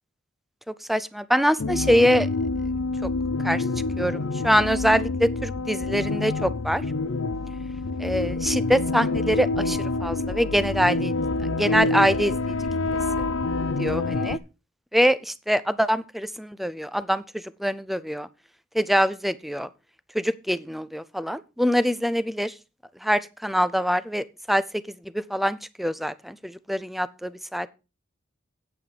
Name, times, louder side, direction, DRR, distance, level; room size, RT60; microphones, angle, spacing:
voice 1, 0.7-2.3 3.0-3.1 3.4-3.6 4.0-6.8 8.0-11.1 11.6-12.5 13.2-13.3 13.8-14.4 14.9-18.3 18.7-19.7 20.1-22.5 23.0-24.8 25.1-27.7, equal, ahead, 0.5 m, -24 dB
sound 1, 1.6-14.4, left 3 dB, 75° left, 0.6 m, -27 dB
9.1 x 8.2 x 4.9 m
head